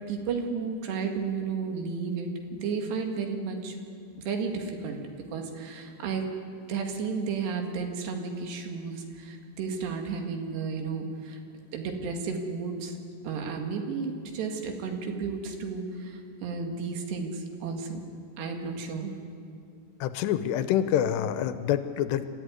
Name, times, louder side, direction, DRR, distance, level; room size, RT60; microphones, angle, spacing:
voice 1, 0.1-3.8 4.2-5.0 5.3-6.2 6.7-11.4 11.7-13.0 13.2-18.0 18.4-19.1, right 5 dB, 75° right, 4 dB, 4.1 m, -33 dB
voice 2, 20.0-22.3, left 10 dB, 85° left, 11 dB, 2.9 m, -26 dB
27.0 x 14.5 x 9.6 m, 2.3 s
omnidirectional pair, 5.0 m